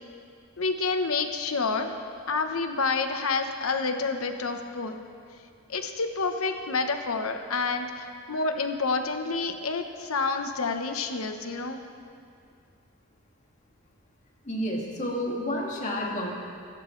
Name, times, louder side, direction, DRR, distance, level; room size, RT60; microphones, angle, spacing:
voice 1, 0.6-1.9 2.3-4.9 5.7-11.8, left 4 dB, 90° left, 6 dB, 1.1 m, -28 dB
voice 2, 14.4-16.3, equal, 35° left, -3 dB, 2.4 m, -30 dB
24.0 x 13.5 x 3.3 m, 2.3 s
head